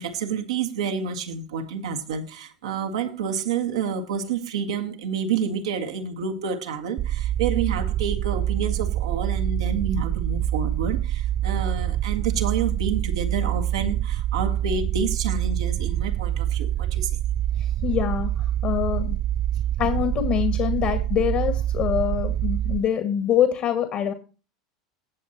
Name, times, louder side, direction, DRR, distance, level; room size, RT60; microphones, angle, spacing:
voice 1, 0.0-17.2, right 6 dB, 70° right, 1.7 m, -29 dB
sound 1, 7.0-22.8, right 12 dB, 35° right, 0.4 m, -26 dB
voice 2, 17.8-18.3 18.6-19.2 19.8-24.1, left 9 dB, 45° left, 1.8 m, -24 dB
16.0 x 7.5 x 2.9 m
figure-of-eight pair, 80°, 3 cm